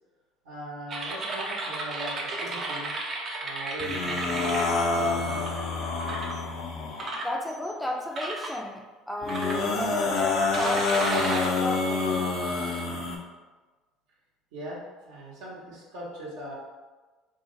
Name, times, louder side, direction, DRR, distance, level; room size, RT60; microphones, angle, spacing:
voice 1, 0.4-2.9 3.4-5.7 14.5-16.5, right 1 dB, 75° right, -6 dB, 1.0 m, -40 dB
sound 1, 0.9-5.5 6.0-6.4 7.0-7.7 8.2-8.5 9.3-10.0 10.5-12.8, right 2 dB, 45° right, 0.6 m, -34 dB
sound 2, 3.8-7.2 9.2-13.2, left 3 dB, 60° left, 0.5 m, -27 dB
voice 2, 7.2-12.2, left 1 dB, 5° left, 1 dB, 0.4 m, -33 dB
2.8 x 2.0 x 3.8 m, 1.3 s
hypercardioid pair, 70°, 0 cm